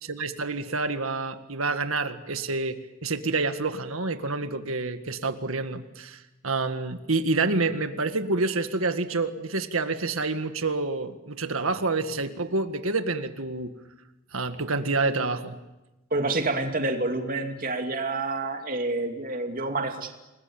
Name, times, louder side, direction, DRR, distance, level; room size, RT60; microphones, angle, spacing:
voice 1, 0.0-13.7 14.3-15.6, right 3 dB, 85° right, 8 dB, 1.9 m, -28 dB
voice 2, 16.1-20.1, right 2 dB, 45° right, 4 dB, 2.6 m, -28 dB
28.5 x 21.0 x 8.8 m, 1.0 s
head